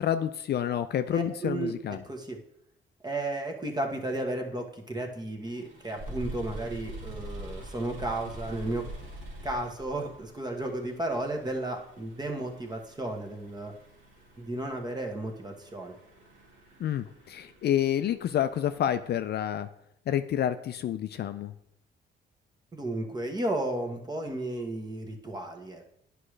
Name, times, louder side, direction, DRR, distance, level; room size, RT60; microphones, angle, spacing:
voice 1, 0.0-2.0 16.8-19.7 20.1-21.5, left 10 dB, 55° left, 10 dB, 0.4 m, -29 dB
voice 2, 1.1-2.4 3.0-8.9 9.4-13.7 14.4-16.0 22.7-25.8, right 2 dB, 20° right, 3 dB, 1.2 m, -33 dB
sound 1, 5.4-18.9, right 1 dB, 75° right, 1.9 m, -45 dB
9.9 x 5.0 x 3.2 m, 0.77 s
cardioid pair, 90°, 20 cm